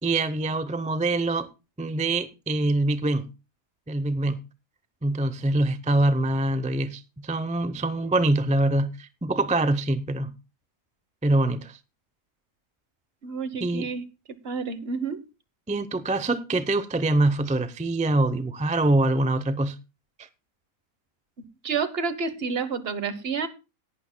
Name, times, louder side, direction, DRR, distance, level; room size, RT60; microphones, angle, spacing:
voice 1, 0.0-1.5 1.8-3.3 3.9-4.4 5.0-10.3 11.2-11.8 13.6-13.9 15.7-19.8 20.2-20.3, right 2 dB, 10° right, 0.3 m, -24 dB
voice 2, 13.2-14.0 14.4-15.2 21.6-23.5, right 5 dB, 45° right, 1.2 m, -29 dB
18.5 x 11.0 x 2.2 m
omnidirectional pair, 1.5 m